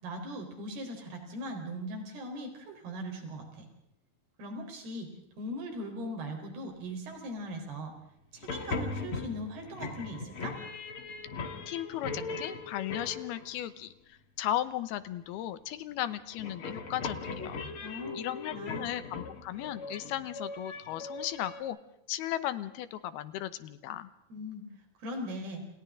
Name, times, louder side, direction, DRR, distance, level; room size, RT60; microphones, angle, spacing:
voice 1, 0.0-3.7 4.4-5.1 5.4-7.9 8.3-10.6 17.8-18.9 24.3-24.6 25.0-25.6, equal, 75° right, 3 dB, 6.1 m, -39 dB
sound 1, 8.4-13.7 15.9-21.6, left 4 dB, 40° left, 2.2 m, -39 dB
voice 2, 11.7-17.6 18.1-21.8 22.1-24.1, left 12 dB, 80° left, 13 dB, 2.9 m, -36 dB
29.5 x 28.5 x 3.8 m, 0.80 s
omnidirectional pair, 4.6 m